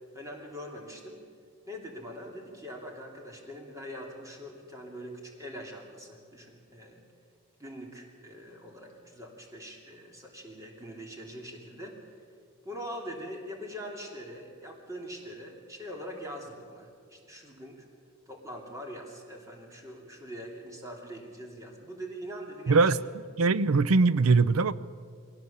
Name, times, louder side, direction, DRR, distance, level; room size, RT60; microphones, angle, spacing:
voice 1, 0.1-1.2 1.7-7.0 7.6-12.0 12.6-17.8 18.3-22.8, equal, 15° right, 0 dB, 2.9 m, -43 dB
voice 2, 22.7-23.0 23.4-24.7, right 4 dB, 80° right, 17 dB, 0.6 m, -21 dB
22.5 x 17.5 x 7.2 m, 2.1 s
head